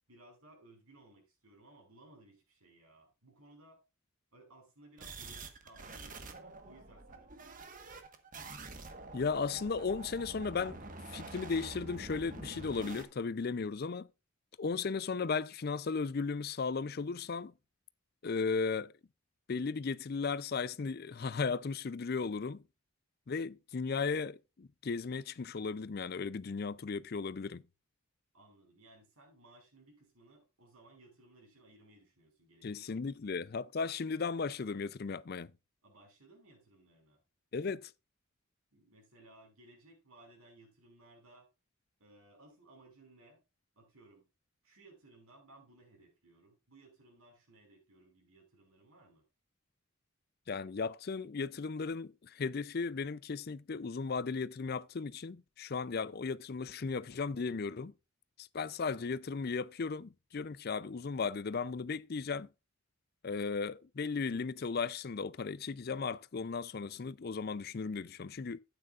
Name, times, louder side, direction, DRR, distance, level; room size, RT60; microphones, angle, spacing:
voice 1, 0.1-3.8 4.3-8.0 28.3-33.3 35.8-37.2 38.7-41.5 42.0-43.4 43.8-44.3 44.6-49.2, right 2 dB, 90° right, 5.3 m, -61 dB
sound 1, 5.0-13.0, right 3 dB, 40° right, 1.3 m, -47 dB
voice 2, 9.1-10.8 11.1-14.1 14.6-17.5 18.2-18.9 19.5-22.6 23.3-27.6 32.6-35.5 37.5-37.9 50.5-57.9 58.4-62.5 63.2-68.6, left 4 dB, 45° left, 0.4 m, -36 dB
12.0 x 9.0 x 2.4 m
head